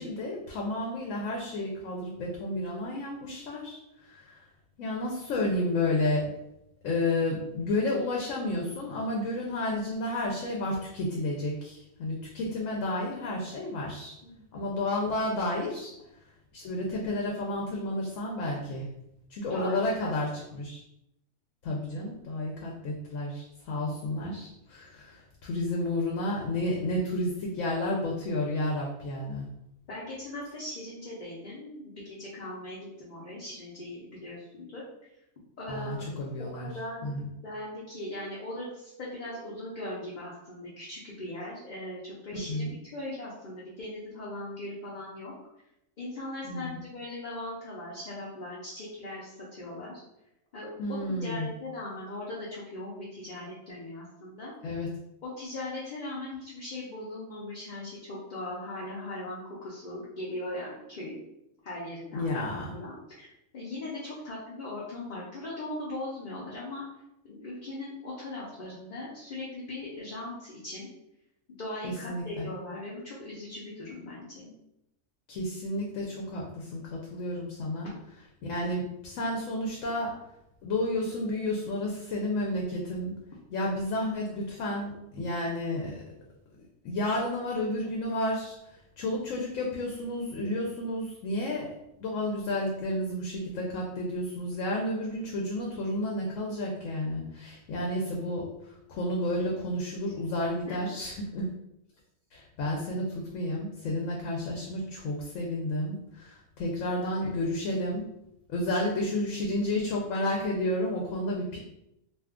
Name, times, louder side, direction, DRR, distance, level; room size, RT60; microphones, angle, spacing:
voice 1, 0.0-4.4 4.8-6.3 6.8-14.2 14.5-15.9 16.5-18.9 19.3-20.8 21.6-29.5 35.7-36.7 37.0-37.3 42.5-42.7 46.5-46.8 50.8-51.5 54.6-54.9 62.1-62.7 71.8-72.5 75.3-77.9 78.4-80.1 80.6-83.1 83.5-85.9 86.6-88.5 89.0-91.7 92.0-101.5 102.3-108.0 108.5-111.6, left 1 dB, 75° left, -2 dB, 0.9 m, -31 dB
voice 2, 19.5-20.1 29.9-34.9 35.6-36.1 36.5-45.3 46.0-50.0 50.5-54.5 55.2-61.2 61.6-63.3 63.5-66.9 67.2-70.9 71.6-74.5 100.7-100.9 107.2-107.3, left 1 dB, 45° left, -6 dB, 0.6 m, -39 dB
2.6 x 2.3 x 3.5 m, 0.84 s
omnidirectional pair, 1.4 m